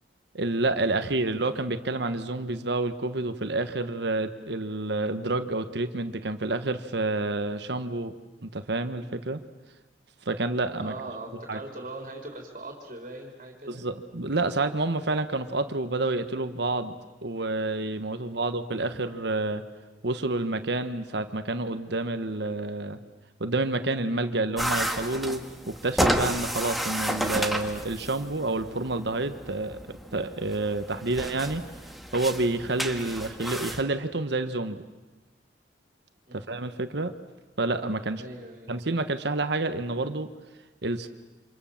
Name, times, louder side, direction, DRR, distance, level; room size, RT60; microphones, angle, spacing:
voice 1, 0.3-8.1 8.4-9.4 10.2-10.9 11.5-11.6 13.7-16.9 17.2-19.6 20.0-23.0 23.4-31.6 32.1-34.8 36.3-37.1 37.6-38.2 38.7-40.3 40.8-41.1, right 2 dB, 65° right, 9 dB, 1.3 m, -29 dB
voice 2, 10.8-13.9 18.2-18.5 36.3-36.5 38.2-38.8, right 2 dB, 40° right, 2 dB, 4.2 m, -41 dB
sound 1, 24.6-33.8, equal, ahead, 1.7 m, -32 dB
29.0 x 26.5 x 7.3 m, 1.1 s
head